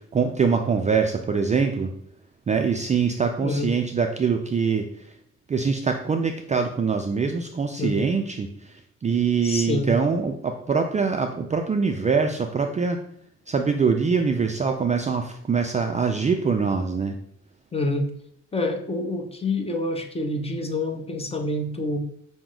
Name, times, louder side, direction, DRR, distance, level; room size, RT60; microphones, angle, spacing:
voice 1, 0.1-1.9 2.5-4.9 5.5-8.5 9.0-13.0 13.5-17.2, right 5 dB, 25° right, 5 dB, 0.3 m, -23 dB
voice 2, 9.4-9.9 17.7-18.1 18.5-22.0, left 2 dB, 20° left, 4 dB, 0.7 m, -27 dB
5.7 x 2.1 x 3.8 m, 0.70 s
cardioid pair, 90°, 30 cm